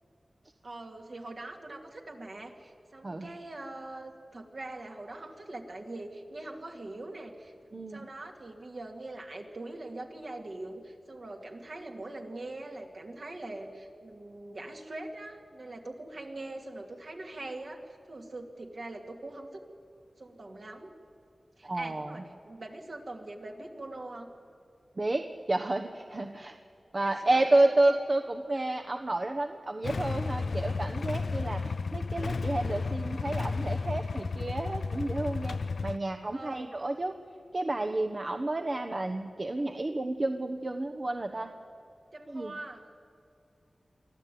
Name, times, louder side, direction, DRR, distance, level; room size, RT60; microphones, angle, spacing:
voice 1, 0.6-7.5 7.9-17.8 18.1-19.6 20.2-20.9 21.6-24.3 26.9-27.7 28.5-28.7 36.3-36.7 42.1-42.9, right 2 dB, 65° right, 1 dB, 2.7 m, -42 dB
voice 2, 7.7-8.1 21.6-22.2 25.0-26.6 26.9-37.1 37.5-41.5 42.3-42.5, right 2 dB, 50° right, 5 dB, 1.1 m, -30 dB
Motorcycle / Engine starting / Idling, 29.8-36.0, left 4 dB, 80° left, 0.4 m, -33 dB
24.0 x 14.0 x 9.4 m, 2.6 s
cardioid pair, 40°, 0 cm